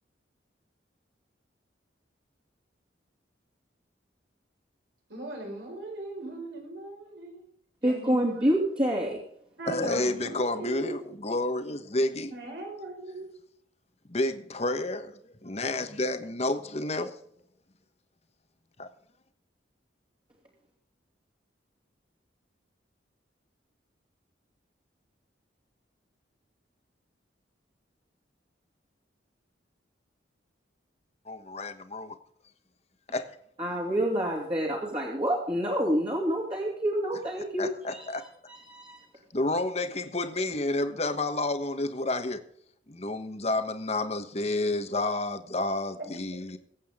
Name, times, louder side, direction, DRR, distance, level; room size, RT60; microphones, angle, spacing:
voice 1, 5.1-7.5 7.8-8.6 9.6-11.1 12.3-13.3, right 2 dB, 65° right, 5.2 m, -39 dB
voice 2, 7.8-9.2 33.6-38.1 38.5-39.0, equal, 25° right, 2.7 m, -28 dB
voice 3, 9.7-12.3 14.1-17.1 18.8-18.9 31.3-32.1 33.1-33.3 37.6-38.2 39.3-42.4 42.9-46.6, left 2 dB, 35° left, 1.2 m, -30 dB
22.5 x 8.6 x 3.7 m
head